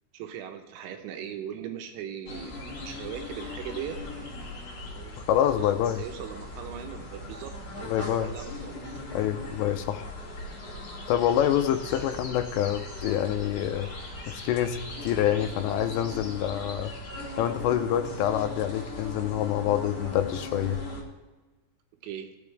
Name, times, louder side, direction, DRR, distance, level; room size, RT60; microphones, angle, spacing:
voice 1, 0.1-4.0 4.9-9.0 22.0-22.3, right 9 dB, 85° right, 5 dB, 3.3 m, -39 dB
sound 1, 2.3-21.0, left 2 dB, 45° left, 2.8 m, -39 dB
voice 2, 5.3-6.0 7.8-8.3 9.1-10.1 11.1-13.9 14.3-16.9 17.4-20.8, left 11 dB, 80° left, 8 dB, 2.7 m, -26 dB
17.5 x 7.1 x 3.3 m, 1.2 s
omnidirectional pair, 5.3 m